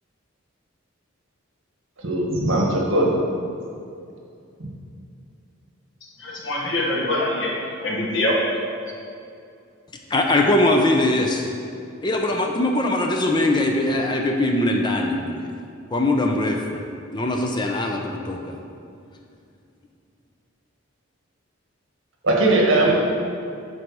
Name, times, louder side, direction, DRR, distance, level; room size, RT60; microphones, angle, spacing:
voice 1, 2.0-3.1 22.2-22.9, right 2 dB, 75° right, -2 dB, 1.5 m, -19 dB
voice 2, 6.2-8.5, left 1 dB, 65° left, -3 dB, 1.5 m, -24 dB
voice 3, 10.1-11.5 12.0-15.5 15.9-16.8 17.1-18.6, left 1 dB, 20° left, 1 dB, 0.6 m, -21 dB
7.8 x 4.1 x 6.1 m, 2.5 s
head